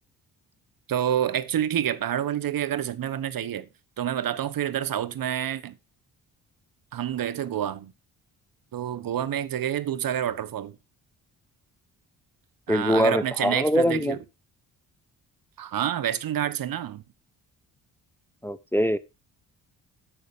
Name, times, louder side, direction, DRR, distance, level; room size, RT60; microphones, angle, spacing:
voice 1, 0.9-3.7 4.0-5.8 6.9-7.9 8.7-10.8 12.7-14.2 15.6-17.0, right 10 dB, 60° right, 1.1 m, -28 dB
voice 2, 12.7-14.2 18.4-19.0, equal, 5° left, 0.7 m, -23 dB
9.8 x 6.5 x 5.2 m
supercardioid pair, 55°, 40 cm